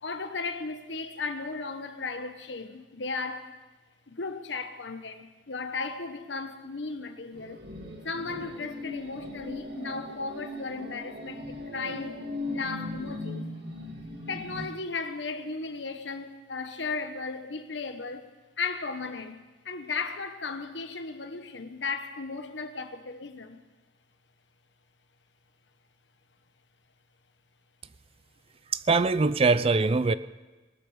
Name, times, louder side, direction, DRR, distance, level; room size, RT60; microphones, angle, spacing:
voice 1, 0.0-3.5 4.1-7.6 8.0-12.2 12.5-13.5 14.3-18.2 18.6-23.6, left 4 dB, 85° left, 1.2 m, -35 dB
sound 1, 7.3-14.6, left 1 dB, 65° right, 1.9 m, -39 dB
voice 2, 28.7-30.1, right 3 dB, 35° right, 0.4 m, -22 dB
19.5 x 13.0 x 5.0 m
head